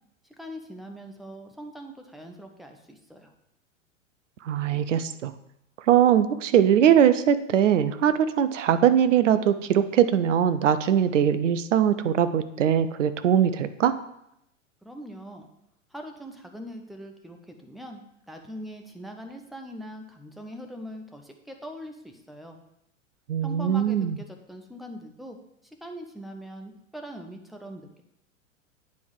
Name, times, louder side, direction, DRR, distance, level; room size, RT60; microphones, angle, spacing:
voice 1, 0.4-3.3 14.8-15.5 15.9-22.6 23.4-25.4 25.6-28.0, equal, ahead, 4 dB, 0.4 m, -42 dB
voice 2, 4.4-5.3 5.9-13.9 23.3-24.2, right 9 dB, 65° right, 12 dB, 0.6 m, -21 dB
9.3 x 3.5 x 4.7 m, 0.79 s
figure-of-eight pair, 95°, 39 cm